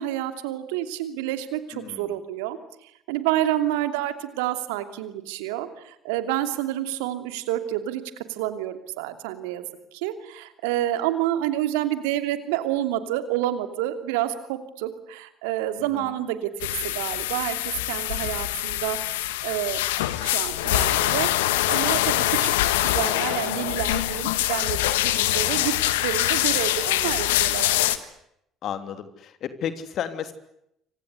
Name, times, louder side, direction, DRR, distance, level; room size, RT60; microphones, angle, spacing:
voice 1, 0.0-9.7 9.9-19.8 20.2-22.5 22.8-25.7 26.0-27.8, right 13 dB, 75° right, 10 dB, 2.8 m, -29 dB
voice 2, 1.7-2.1 15.8-16.2 25.0-25.7 28.6-30.3, left 9 dB, 55° left, 10 dB, 3.2 m, -34 dB
sound 1, 16.6-28.0, left 15 dB, 80° left, 1.6 m, -24 dB
28.0 x 25.5 x 8.3 m, 0.77 s
hypercardioid pair, 55°, 0 cm